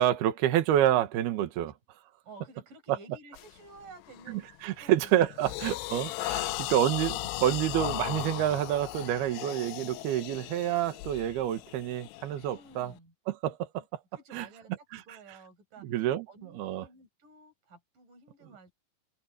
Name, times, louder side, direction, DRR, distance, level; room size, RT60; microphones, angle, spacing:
voice 1, 0.0-1.7 4.3-7.2 7.4-12.9 13.3-14.0 14.3-14.4 14.9-15.0 15.8-16.2 16.6-16.9, right 12 dB, 70° right, 3.3 m, -28 dB
voice 2, 2.2-5.5 6.4-6.8 12.5-13.1 13.8-13.9 14.1-15.9 16.3-18.7, right 3 dB, 50° right, 8.1 m, -53 dB
sound 1, 3.4-3.6 4.1-4.4 4.8-12.9, left 19 dB, 80° left, 2.5 m, -37 dB
omnidirectional pair, 5.1 m